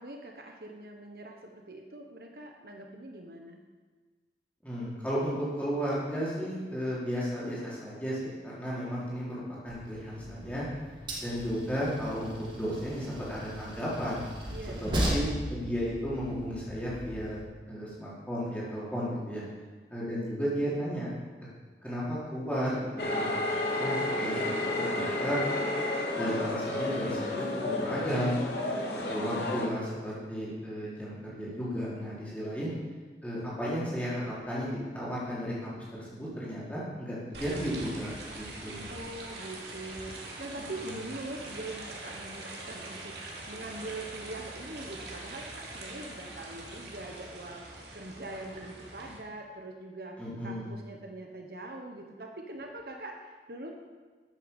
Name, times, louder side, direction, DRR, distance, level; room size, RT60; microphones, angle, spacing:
voice 1, 0.0-3.6 14.5-15.0 38.9-53.8, right 2 dB, 55° right, 2 dB, 1.3 m, -43 dB
voice 2, 4.6-10.7 11.2-14.2 14.8-17.4 17.7-19.4 19.9-21.1 21.8-23.3 23.8-24.3 24.8-25.4 26.1-28.3 28.9-32.7 33.2-38.9 40.6-41.0 50.2-50.7, equal, 10° left, -8 dB, 4.5 m, -34 dB
Train, 9.7-17.4, equal, 25° right, 2.1 m, -37 dB
sound 1, 23.0-29.7, left 2 dB, 70° left, 2.7 m, -31 dB
sound 2, 37.3-49.2, right 2 dB, 75° right, 2.9 m, -43 dB
12.5 x 8.4 x 7.2 m, 1.4 s
head